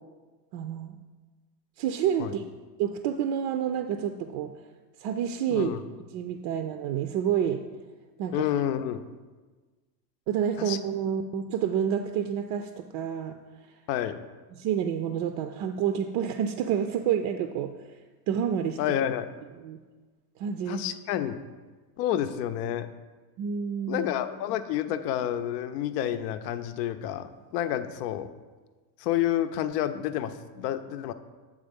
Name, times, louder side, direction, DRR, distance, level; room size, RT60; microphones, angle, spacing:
voice 1, 0.5-1.0 1.8-2.4 2.8-4.5 5.0-5.7 6.1-7.6 8.2-8.5 10.3-13.4 14.6-17.7 18.3-18.8 19.6-19.8 20.4-20.8 23.4-24.1, right 8 dB, 50° right, 7 dB, 0.5 m, -28 dB
voice 2, 5.5-5.8 8.3-9.0 10.6-10.8 13.9-14.2 18.8-19.3 20.7-21.4 22.0-22.9 23.9-28.3 29.0-31.1, left 11 dB, 85° left, 11 dB, 0.6 m, -29 dB
8.1 x 3.6 x 5.3 m, 1.3 s
supercardioid pair, 120°, 47 cm